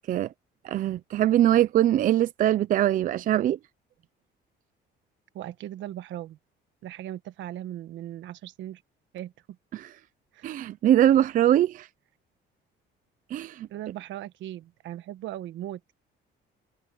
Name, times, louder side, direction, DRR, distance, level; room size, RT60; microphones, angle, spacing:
voice 1, 0.6-3.6 9.7-9.9 10.4-11.9 13.3-13.7, right 12 dB, 45° right, 0.4 m, -22 dB
voice 2, 5.3-6.4 6.8-8.8 9.1-9.3 10.3-10.5 13.7-16.0, right 13 dB, 70° right, 1.3 m, -38 dB
cardioid pair, 170°, 20 cm